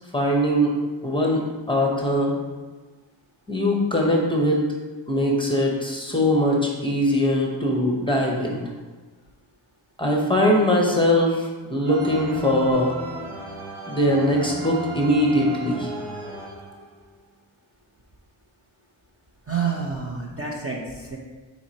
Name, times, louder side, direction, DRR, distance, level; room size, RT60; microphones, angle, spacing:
voice 1, 0.1-0.7 1.0-1.4 1.7-2.3 3.5-4.6 5.1-8.6 10.0-11.4 11.7-12.9 13.9-15.9, equal, 10° left, -1 dB, 0.8 m, -21 dB
sound 1, 11.8-17.1, right 2 dB, 75° right, 1.1 m, -35 dB
voice 2, 19.5-21.2, right 6 dB, 30° right, -2 dB, 0.7 m, -28 dB
9.2 x 4.2 x 2.8 m, 1.3 s
wide cardioid pair, 165°, 49 cm